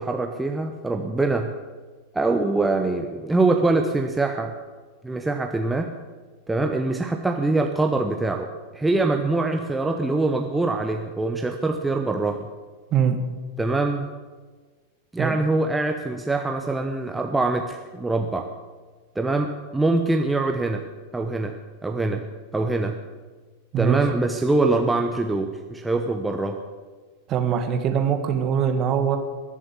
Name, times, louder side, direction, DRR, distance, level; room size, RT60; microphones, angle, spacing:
voice 1, 0.0-1.5 2.1-4.5 5.0-5.9 6.5-12.5 13.6-14.1 15.1-18.5 19.1-20.8 21.1-21.6 21.8-22.2 22.5-23.0 23.8-26.6, right 2 dB, 10° right, 3 dB, 1.0 m, -24 dB
voice 2, 27.3-29.2, right 8 dB, 35° right, 6 dB, 1.9 m, -22 dB
22.0 x 7.4 x 8.4 m, 1.4 s
figure-of-eight pair, 90°, 0 cm